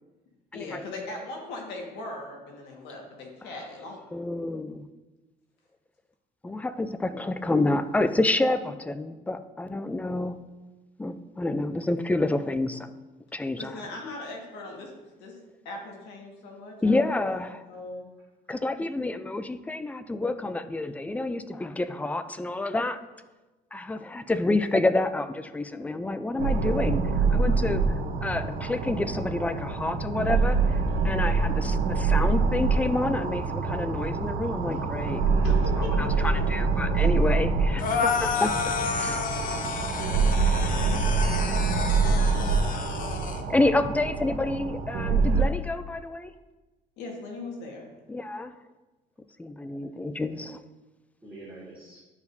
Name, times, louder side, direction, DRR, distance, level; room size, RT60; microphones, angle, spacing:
voice 1, 0.5-4.0 13.6-14.9 15.2-15.4 15.6-17.0 17.5-18.1 35.4-36.3 37.0-37.1 47.0-47.9, left 2 dB, 90° left, 0 dB, 1.6 m, -39 dB
voice 2, 4.1-4.8 6.4-10.4 11.0-12.9 13.3-13.8 16.8-17.7 18.5-23.0 23.7-30.8 31.0-35.2 36.0-38.5 39.0-39.2 40.4-41.0 43.5-46.3 48.1-48.5 49.4-50.6, left 2 dB, 10° left, 11 dB, 0.4 m, -28 dB
sound 1, 26.4-45.4, right 4 dB, 75° right, 1.0 m, -25 dB
sound 2, 37.8-43.4, left 6 dB, 55° left, 0.6 m, -30 dB
voice 3, 42.3-42.8 51.2-52.0, right 2 dB, 10° right, -9 dB, 2.2 m, -49 dB
11.5 x 4.8 x 2.7 m, 1.1 s
cardioid pair, 110°, 17 cm